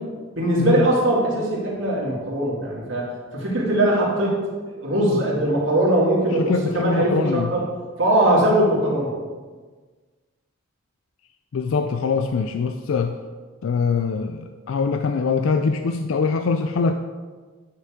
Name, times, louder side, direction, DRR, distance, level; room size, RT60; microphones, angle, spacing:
voice 1, 0.4-4.4 4.7-7.6 8.0-9.1, right 1 dB, 65° right, -4 dB, 2.3 m, -21 dB
voice 2, 6.3-7.5 11.5-13.2 13.6-16.9, left 4 dB, 80° left, 7 dB, 0.4 m, -23 dB
9.6 x 5.9 x 3.7 m, 1.4 s
head